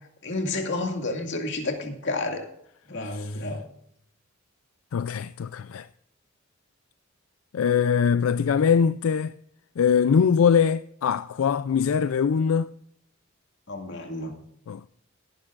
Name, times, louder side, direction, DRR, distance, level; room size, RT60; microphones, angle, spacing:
voice 1, 0.2-2.5 2.9-3.7 13.7-14.4, left 2 dB, 60° left, 2.2 m, -30 dB
voice 2, 4.9-5.9 7.5-9.3 9.8-12.7 14.7-14.9, left 7 dB, 85° left, 0.4 m, -22 dB
17.5 x 11.0 x 2.5 m
head